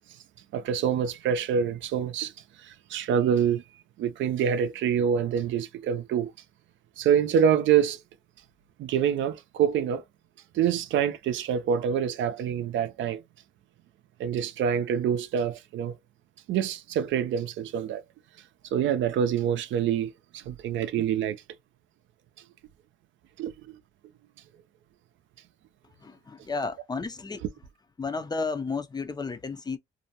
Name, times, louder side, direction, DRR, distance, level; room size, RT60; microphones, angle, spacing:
voice 1, 0.5-2.3 2.6-3.6 4.0-6.3 7.0-8.0 8.8-10.0 10.5-13.2 14.2-16.0 16.5-18.0 18.7-21.4 23.4-23.8, right 8 dB, 75° right, 0.5 m, -26 dB
voice 2, 26.0-27.4 28.0-29.8, left 4 dB, 20° left, 0.4 m, -32 dB
2.6 x 2.1 x 2.7 m
cardioid pair, 90°, 20 cm